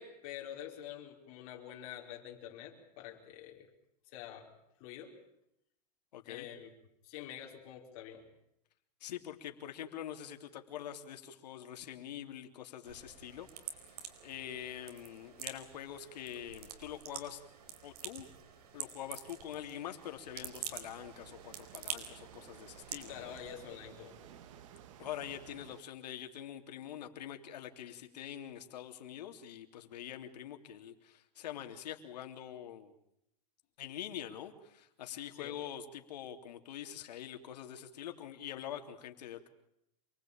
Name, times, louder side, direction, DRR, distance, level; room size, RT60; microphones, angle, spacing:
voice 1, 0.0-3.7 4.1-4.5 4.8-5.1 6.2-6.7 7.0-8.2 23.1-24.2 35.3-35.6, left 10 dB, 35° left, 0 dB, 5.1 m, -47 dB
voice 2, 6.1-6.5 9.0-13.5 13.8-17.4 17.8-18.3 18.7-23.4 25.0-32.9 33.8-39.5, left 10 dB, 85° left, 6 dB, 3.4 m, -45 dB
sound 1, 12.8-23.5, right 8 dB, 70° right, 4.6 m, -47 dB
sound 2, 20.3-25.8, right 9 dB, 50° right, 2.3 m, -55 dB
28.0 x 20.5 x 8.9 m, 0.82 s
supercardioid pair, 175°, 21 cm